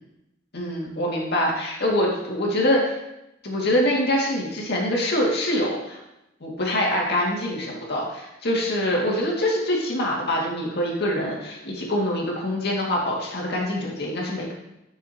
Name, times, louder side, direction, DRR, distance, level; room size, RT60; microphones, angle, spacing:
voice 1, 0.5-3.0 3.4-6.0 6.4-14.5, left 1 dB, 55° left, -2 dB, 2.0 m, -24 dB
10.5 x 6.2 x 2.8 m, 0.90 s
head